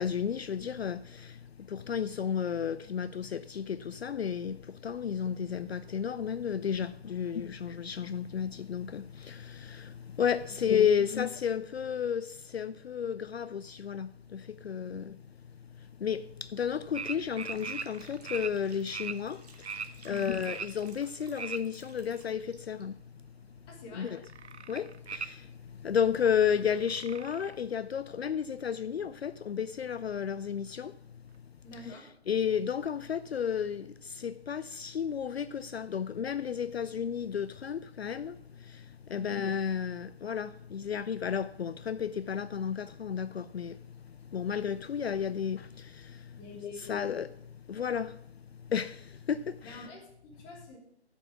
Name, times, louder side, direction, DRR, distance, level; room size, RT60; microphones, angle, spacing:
voice 1, 0.0-15.2 15.5-23.0 23.9-24.2 24.5-31.3 31.8-31.9 32.3-49.8, left 7 dB, 65° left, 0.4 m, -33 dB
voice 2, 10.5-11.0 20.1-20.3 23.7-24.1 31.6-32.1 39.1-39.3 46.3-47.0 49.6-50.8, equal, 15° left, 1.4 m, -49 dB
sound 1, 16.9-18.5 18.9-19.1 19.6-21.6 22.0-23.0 23.4-23.8 24.1-25.3 25.8-25.9 26.1-26.2 26.5-27.8 28.1-28.2 28.4-28.5 29.1-29.2 29.7-29.8 30.1-30.2, right 6 dB, 75° right, 0.7 m, -40 dB
Liquid, 17.4-22.8, right 4 dB, 35° right, 1.5 m, -58 dB
7.8 x 6.0 x 7.2 m
figure-of-eight pair, 145°, 34 cm